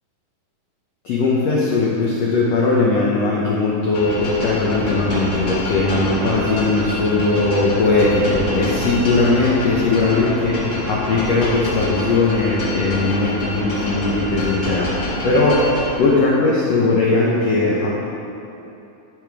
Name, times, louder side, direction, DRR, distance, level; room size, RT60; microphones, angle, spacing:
voice 1, 1.0-15.7 16.0-17.9, left 3 dB, 85° left, -5 dB, 1.4 m, -19 dB
sound 1, 3.9-15.9, left 1 dB, 50° left, 1.5 m, -26 dB
14.0 x 5.1 x 3.5 m, 2.9 s
omnidirectional pair, 4.1 m